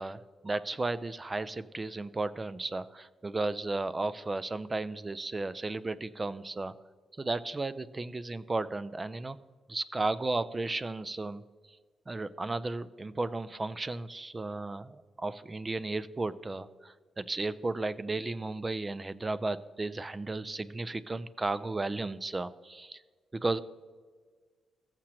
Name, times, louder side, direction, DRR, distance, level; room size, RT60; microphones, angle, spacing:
voice 1, 0.0-6.7 7.2-9.4 9.7-11.4 12.1-23.0 23.3-23.6, right 2 dB, 20° right, 15 dB, 0.3 m, -34 dB
14.5 x 7.4 x 2.9 m, 1.5 s
cardioid pair, 140°, 0 cm